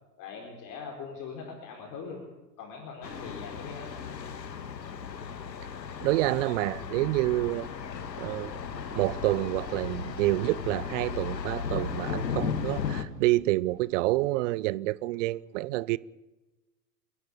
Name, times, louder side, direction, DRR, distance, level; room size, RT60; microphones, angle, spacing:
voice 1, 0.2-2.2 2.6-3.9, left 5 dB, 40° left, 4.6 m, -41 dB
Thunder, 3.0-13.0, left 6 dB, 80° left, 1.9 m, -36 dB
voice 2, 6.0-7.7 8.2-8.5 8.9-16.0, right 18 dB, 50° right, 0.7 m, -28 dB
sound 1, 7.2-14.2, left 6 dB, 55° left, 5.6 m, -50 dB
29.5 x 11.0 x 10.0 m
hypercardioid pair, 100°, 49 cm